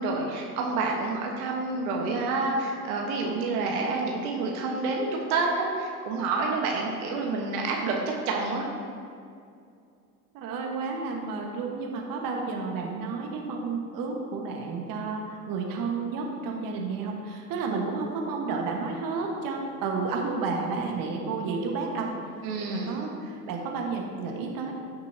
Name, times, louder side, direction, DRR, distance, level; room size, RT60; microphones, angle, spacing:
voice 1, 0.0-8.0 8.2-8.7 22.4-23.0, right 3 dB, 65° right, -1 dB, 1.5 m, -28 dB
voice 2, 10.3-22.2 22.6-24.7, right 4 dB, 45° right, 0 dB, 1.5 m, -31 dB
15.5 x 6.1 x 2.9 m, 2.4 s
hypercardioid pair, 80°, 46 cm